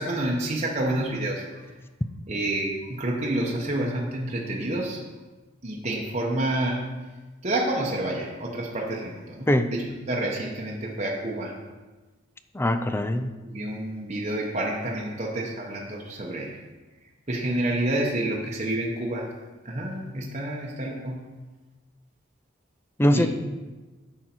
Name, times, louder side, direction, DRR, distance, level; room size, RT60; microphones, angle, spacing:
voice 1, 0.0-1.7 2.3-5.0 5.6-6.9 7.4-11.6 13.4-16.6 17.3-19.3 19.6-21.2 23.1-23.3, right 1 dB, 35° right, -2 dB, 0.9 m, -29 dB
voice 2, 12.5-13.3 23.0-23.3, left 1 dB, 10° left, 9 dB, 0.4 m, -22 dB
9.2 x 6.2 x 4.4 m, 1.2 s
head